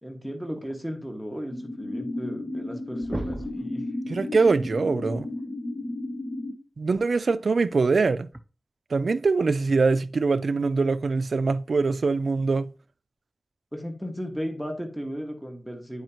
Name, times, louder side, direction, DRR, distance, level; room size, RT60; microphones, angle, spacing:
voice 1, 0.0-3.9 13.7-16.0, equal, ahead, 1.8 m, -35 dB
sound 1, 1.5-6.5, left 2 dB, 45° left, 1.0 m, -33 dB
sound 2, 2.5-2.7 3.0-3.7 5.4-5.5 7.3-7.5 8.3-8.4, right 1 dB, 25° right, 0.5 m, -35 dB
voice 2, 4.1-5.3 6.8-8.3 8.9-12.7, right 4 dB, 75° right, 0.4 m, -23 dB
9.2 x 4.9 x 3.0 m
cardioid pair, 50°, 0 cm